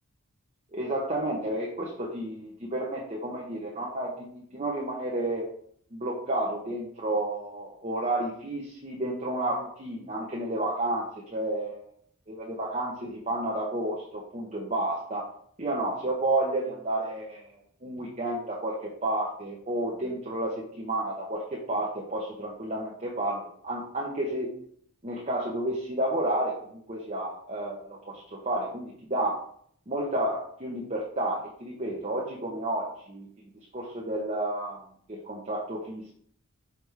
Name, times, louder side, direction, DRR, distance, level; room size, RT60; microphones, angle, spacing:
voice 1, 0.7-5.5 5.9-11.8 12.3-15.3 15.6-17.4 17.8-24.5 25.0-29.4 29.9-33.3 33.7-34.8 35.1-36.1, right 1 dB, 30° right, -3 dB, 1.0 m, -31 dB
6.3 x 5.3 x 3.4 m, 0.62 s
head